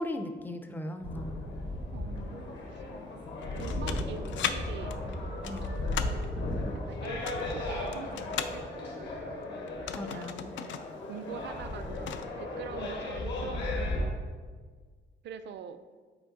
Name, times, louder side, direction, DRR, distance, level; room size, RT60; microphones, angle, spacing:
voice 1, 0.0-1.4 5.4-5.7 10.0-10.5, left 1 dB, 10° left, 6 dB, 0.4 m, -37 dB
sound 1, 1.0-14.1, left 2 dB, 65° left, 1.2 m, -35 dB
voice 2, 1.9-2.8 3.6-5.8 6.8-9.5 10.0-10.5 11.1-14.2 15.2-15.8, right 8 dB, 70° right, 11 dB, 0.4 m, -45 dB
sound 2, 3.4-4.6 4.9-6.3 7.1-8.6 9.7-10.9 11.2-11.3 11.7-12.3, left 9 dB, 85° left, 0.4 m, -36 dB
7.9 x 4.4 x 3.8 m, 1.5 s
wide cardioid pair, 175°, 19 cm